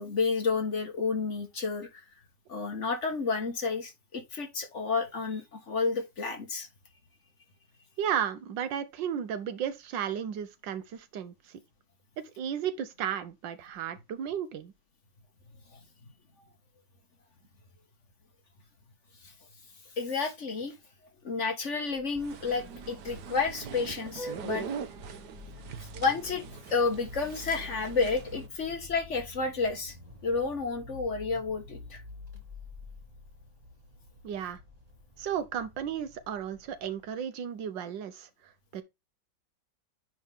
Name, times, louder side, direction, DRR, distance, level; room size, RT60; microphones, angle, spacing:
voice 1, 0.0-2.0 2.5-6.7 19.2-19.3 20.0-20.8 21.2-24.7 26.0-30.0 30.2-32.0, left 4 dB, 45° left, 1.6 m, -31 dB
voice 2, 8.0-11.6 12.4-14.7 34.2-34.6 35.2-38.8, right 9 dB, 85° right, 1.6 m, -34 dB
Vehicle horn car horn honking, 21.8-37.2, left 2 dB, 20° right, 2.0 m, -48 dB
sound 1, 22.1-28.5, right 6 dB, 70° right, 1.4 m, -42 dB
9.5 x 3.7 x 3.6 m
omnidirectional pair, 1.9 m